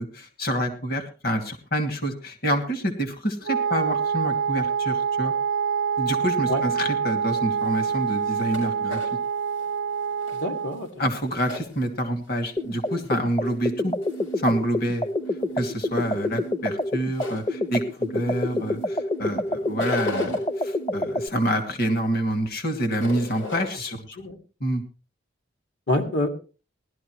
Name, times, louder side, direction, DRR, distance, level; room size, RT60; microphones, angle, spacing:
voice 1, 0.0-5.3 6.0-9.0 11.0-13.9 14.4-15.1 15.6-24.0 24.6-24.8, equal, 55° left, 6 dB, 2.5 m, -27 dB
Wind instrument woodwind instrument, 3.4-10.9, right 6 dB, 85° right, 0.6 m, -26 dB
sound 1, 7.2-12.3 12.7-13.5 14.0-14.5 15.0-18.8 19.1-20.4 20.9-23.7, left 3 dB, 85° left, 6.6 m, -39 dB
voice 2, 10.3-10.9 24.2-24.4 25.9-26.3, left 1 dB, 70° left, 5 dB, 2.4 m, -26 dB
sound 2, 12.6-21.3, left 1 dB, 25° left, 0.6 m, -28 dB
19.0 x 12.5 x 3.2 m, 0.34 s
head